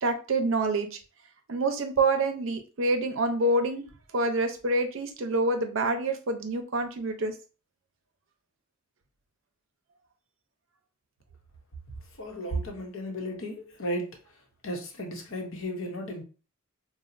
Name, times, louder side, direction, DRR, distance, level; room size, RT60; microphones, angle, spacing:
voice 1, 0.0-1.0 1.5-3.8 4.1-7.4, right 2 dB, 70° right, 0.6 m, -27 dB
voice 2, 12.2-14.2 14.6-16.2, equal, 70° left, 0.8 m, -34 dB
4.1 x 2.1 x 2.5 m
head